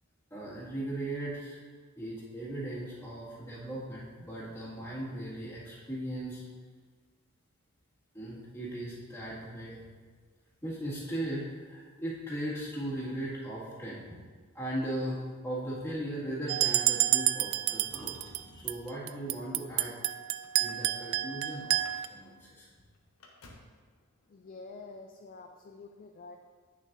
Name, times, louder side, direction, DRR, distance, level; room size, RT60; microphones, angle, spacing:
voice 1, 0.3-1.6 2.0-6.4 8.1-9.8 10.6-14.0 14.5-18.2 18.5-20.0 20.6-22.7, right 1 dB, 15° left, -9 dB, 2.1 m, -38 dB
sound 1, 16.5-18.4 18.7-22.1, right 14 dB, 75° right, 0.3 m, -29 dB
Motor vehicle (road), 17.9-19.0 19.8-21.3 21.7-22.0 22.3-22.4 22.7-23.8 24.9-25.0, left 2 dB, 80° left, 0.9 m, -55 dB
voice 2, 24.3-26.4, left 3 dB, 40° left, 4 dB, 0.4 m, -48 dB
8.8 x 6.4 x 2.7 m, 1.5 s
head